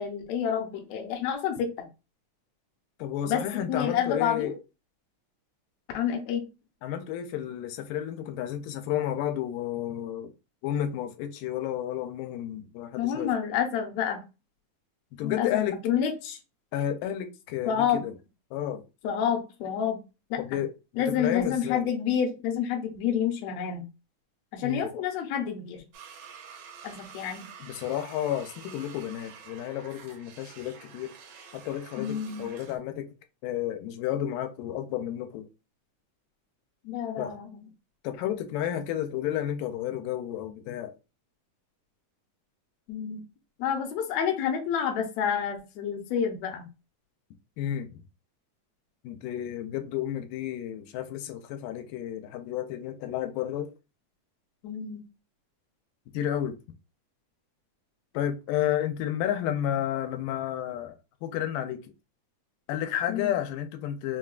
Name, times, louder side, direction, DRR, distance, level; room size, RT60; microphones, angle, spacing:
voice 1, 0.0-1.9 3.3-3.4 3.7-4.6 5.9-6.4 13.0-14.2 15.2-16.4 17.7-18.0 19.0-20.0 20.3-20.6 21.0-23.9 24.5-25.8 26.8-27.4 32.0-32.5 36.8-37.6 42.9-43.2 43.6-46.7 54.6-55.0 63.1-63.3, left 8 dB, 75° left, 1.7 m, -29 dB
voice 2, 3.0-4.5 6.8-10.3 10.6-13.3 15.2-15.8 16.7-18.1 18.5-18.8 20.4-21.8 24.6-24.9 27.6-31.2 31.5-33.1 33.4-35.5 37.2-37.4 38.0-41.0 47.6-48.0 49.0-53.7 56.1-56.6 58.1-61.0 61.2-61.9 62.7-64.2, left 11 dB, 90° left, 2.2 m, -31 dB
sound 1, 25.9-32.8, right 6 dB, 85° right, 2.4 m, -48 dB
5.6 x 2.2 x 2.4 m
omnidirectional pair, 3.7 m